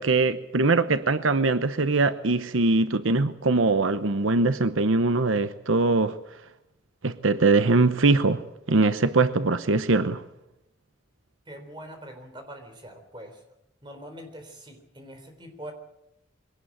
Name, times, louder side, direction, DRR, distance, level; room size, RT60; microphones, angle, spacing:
voice 1, 0.0-6.2 7.0-8.4 8.7-10.2, right 3 dB, 90° right, 12 dB, 0.9 m, -22 dB
voice 2, 11.5-13.4 13.8-15.7, equal, 25° right, 5 dB, 4.0 m, -43 dB
22.5 x 18.0 x 8.8 m, 0.86 s
head